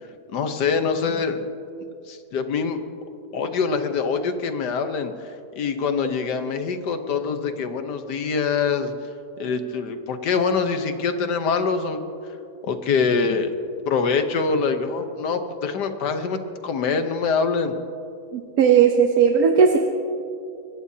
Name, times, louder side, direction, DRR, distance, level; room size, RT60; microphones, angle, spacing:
voice 1, 0.3-1.5 2.1-2.8 3.3-8.9 9.4-12.0 12.6-13.5 13.9-17.7, left 5 dB, 75° left, 8 dB, 1.6 m, -24 dB
voice 2, 18.3-19.8, right 7 dB, 60° right, 4 dB, 1.2 m, -17 dB
24.0 x 20.0 x 2.8 m, 2.6 s
omnidirectional pair, 1.8 m